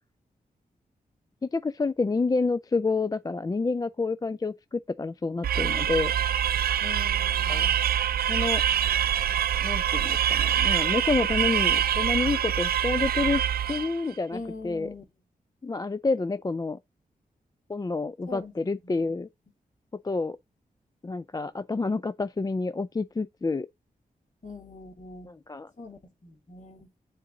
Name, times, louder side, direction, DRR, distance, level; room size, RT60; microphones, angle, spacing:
voice 1, 1.4-6.1 7.5-7.7 8.3-8.6 9.6-13.4 13.7-14.4 14.6-14.9 15.6-16.8 17.7-19.3 20.0-20.4 21.0-23.7 25.2-25.7, left 3 dB, 25° left, 0.4 m, -28 dB
sound 1, 5.4-14.0, right 10 dB, 70° right, 0.4 m, -25 dB
voice 2, 6.8-7.8 14.3-15.0 18.2-18.5 18.8-19.2 24.4-25.4 25.8-26.9, left 3 dB, 50° left, 2.9 m, -42 dB
7.4 x 4.0 x 3.8 m
supercardioid pair, 40°, 16 cm